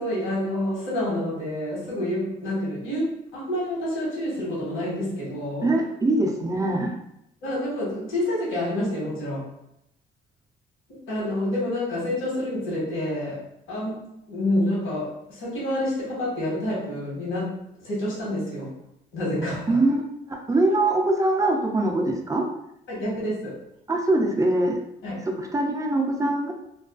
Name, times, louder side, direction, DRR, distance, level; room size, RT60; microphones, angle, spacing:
voice 1, 0.0-5.7 7.4-9.5 10.9-17.5 17.8-18.7 19.1-19.8 22.9-23.6 25.0-25.1, left 1 dB, 85° left, -6 dB, 1.1 m, -28 dB
voice 2, 5.6-6.9 19.7-20.0 20.3-22.5 23.9-24.8 25.2-26.5, right 2 dB, 15° right, 1 dB, 0.4 m, -23 dB
2.3 x 2.3 x 2.3 m, 0.80 s
cardioid pair, 90°, 20 cm